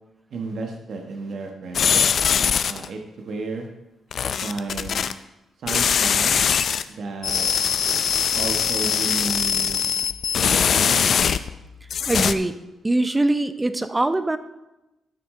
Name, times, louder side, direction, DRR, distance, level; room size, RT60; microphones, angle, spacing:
voice 1, 0.3-2.0 2.7-3.7 4.4-5.0 5.6-6.4 6.9-7.5 8.4-9.9 10.3-11.2, right 3 dB, 65° right, 2 dB, 1.1 m, -32 dB
sound 1, 1.7-2.9 4.1-5.1 5.7-6.8 7.2-11.6 11.9-12.3, left 7 dB, 60° left, 0.4 m, -21 dB
voice 2, 12.1-12.5 12.8-14.4, right 2 dB, 15° right, 11 dB, 0.6 m, -22 dB
12.0 x 6.3 x 3.7 m, 0.96 s
cardioid pair, 90°, 0 cm